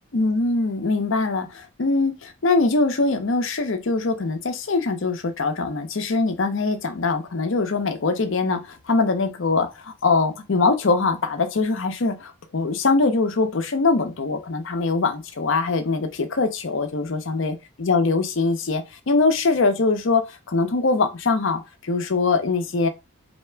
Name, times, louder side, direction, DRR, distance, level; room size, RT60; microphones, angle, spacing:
voice 1, 0.1-22.9, left 3 dB, 60° left, 0.6 m, -22 dB
3.3 x 2.8 x 4.4 m
head